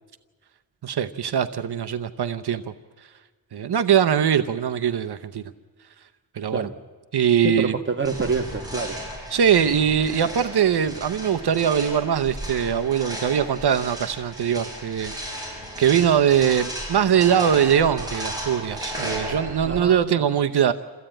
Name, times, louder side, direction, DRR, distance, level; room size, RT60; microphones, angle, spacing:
voice 1, 0.8-2.6 3.5-5.4 6.3-6.7 7.1-7.7 9.3-15.1 15.8-20.7, right 8 dB, 75° right, 9 dB, 0.8 m, -21 dB
voice 2, 7.4-9.0 19.6-20.2, right 4 dB, 30° right, 4 dB, 1.4 m, -26 dB
sound 1, 8.0-19.9, equal, 10° right, 6.6 m, -34 dB
28.0 x 15.0 x 8.9 m, 1.5 s
wide cardioid pair, 160°, 40 cm